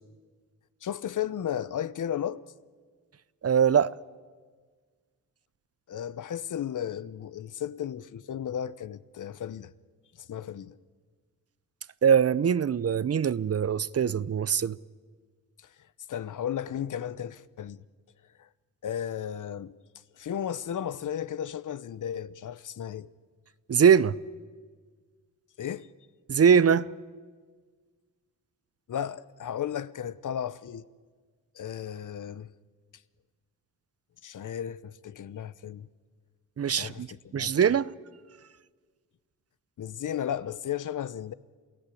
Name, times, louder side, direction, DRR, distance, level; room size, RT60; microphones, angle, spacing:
voice 1, 0.8-2.4 5.9-9.7 10.2-10.8 16.1-17.8 18.4-18.5 18.8-19.8 20.2-23.1 25.6-25.9 28.9-30.9 31.5-32.5 34.2-35.9 36.7-37.5 39.8-41.3, left 9 dB, 60° left, 0.9 m, -34 dB
voice 2, 3.4-3.9 12.0-14.8 23.7-24.1 26.3-26.9 36.6-37.1 37.3-37.9, right 7 dB, 45° right, 0.7 m, -22 dB
28.0 x 16.5 x 8.5 m
cardioid pair, 60°, 35 cm